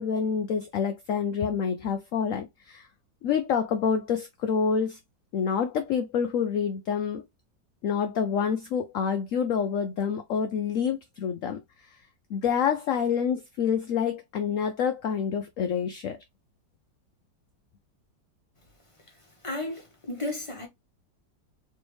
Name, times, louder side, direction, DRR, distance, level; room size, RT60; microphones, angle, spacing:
voice 1, 0.0-2.9 3.2-5.0 5.3-7.2 7.8-11.6 12.3-16.2, left 7 dB, 80° left, 0.7 m, -27 dB
voice 2, 19.4-20.7, left 2 dB, 30° left, 0.6 m, -33 dB
3.4 x 3.2 x 3.1 m
omnidirectional pair, 2.0 m